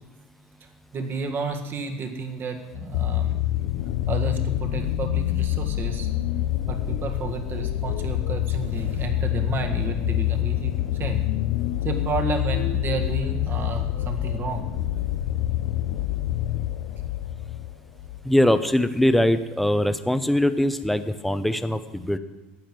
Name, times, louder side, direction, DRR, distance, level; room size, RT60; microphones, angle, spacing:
voice 1, 0.9-3.3 4.1-6.1 6.7-10.7 11.0-11.2 11.8-14.7, right 4 dB, 40° right, 4 dB, 1.9 m, -31 dB
sound 1, 2.7-18.3 19.1-19.2, left 13 dB, 70° left, 0.6 m, -26 dB
voice 2, 18.2-22.2, left 1 dB, ahead, 10 dB, 0.8 m, -22 dB
12.0 x 8.7 x 6.1 m, 1.1 s
hypercardioid pair, 85°, 5 cm